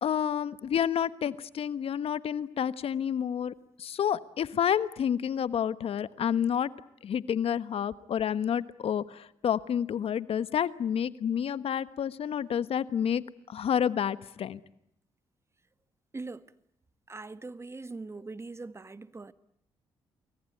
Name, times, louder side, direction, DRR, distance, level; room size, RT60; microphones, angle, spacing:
voice 1, 0.0-6.7 7.0-14.6, left 8 dB, 60° left, 1.3 m, -29 dB
voice 2, 16.1-16.5 17.1-19.3, right 3 dB, 25° right, 1.4 m, -41 dB
28.5 x 22.5 x 9.3 m
supercardioid pair, 70°, 11 cm